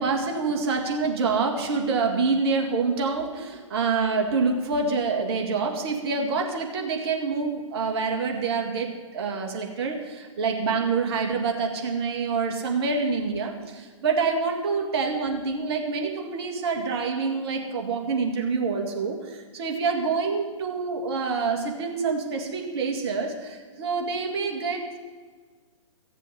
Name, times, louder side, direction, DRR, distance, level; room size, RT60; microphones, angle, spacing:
voice 1, 0.0-25.0, right 4 dB, 50° right, 2 dB, 2.2 m, -26 dB
16.0 x 7.4 x 8.2 m, 1.5 s
figure-of-eight pair, 125°, 17 cm